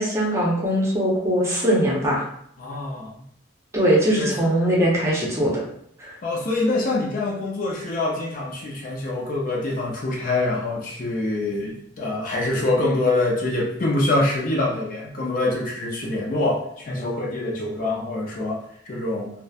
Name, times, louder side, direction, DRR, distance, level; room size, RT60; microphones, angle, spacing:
voice 1, 0.0-2.2 3.7-5.6 6.0-6.1, equal, 15° right, -5 dB, 0.6 m, -21 dB
voice 2, 2.6-3.1 4.2-4.3 6.2-19.3, left 2 dB, 45° left, -2 dB, 0.4 m, -25 dB
2.9 x 2.0 x 2.3 m, 0.70 s
head